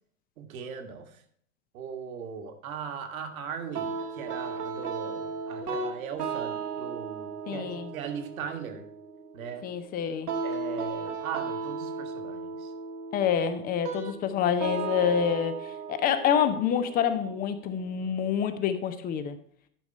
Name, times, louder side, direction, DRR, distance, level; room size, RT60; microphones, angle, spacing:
voice 1, 0.4-1.2 1.7-8.8 9.3-9.6 10.4-12.7, right 7 dB, 65° right, 6 dB, 1.6 m, -39 dB
sound 1, 3.7-18.7, right 5 dB, 85° right, 1.6 m, -36 dB
voice 2, 7.5-7.9 9.6-10.3 13.1-19.4, left 8 dB, 20° left, 11 dB, 0.6 m, -27 dB
11.0 x 4.9 x 5.5 m, 0.63 s
hypercardioid pair, 115°, 46 cm